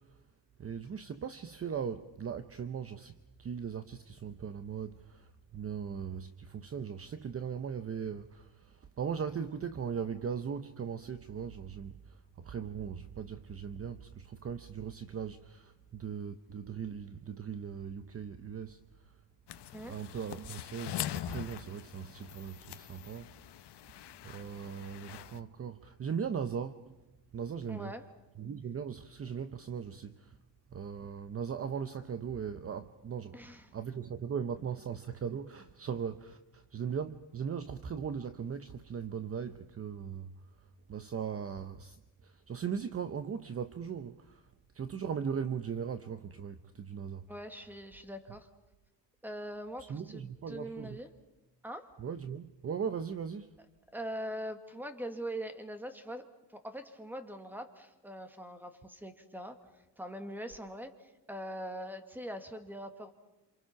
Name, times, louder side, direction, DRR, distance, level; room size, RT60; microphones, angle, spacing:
voice 1, 0.6-3.1 3.4-18.8 19.9-23.3 24.2-27.0 27.3-27.9 28.4-30.4 30.7-40.3 40.9-42.0 42.2-44.4 44.7-47.3 49.8-51.0 52.0-53.5, right 7 dB, 35° right, 0.8 m, -39 dB
sound 1, 19.5-25.4, left 12 dB, 70° left, 1.0 m, -43 dB
voice 2, 27.7-28.0 33.3-33.7 47.3-48.5 49.2-51.1 51.6-51.9 53.9-59.6 60.0-63.1, equal, 5° right, 1.8 m, -42 dB
28.0 x 27.0 x 5.8 m
cardioid pair, 150°, 43 cm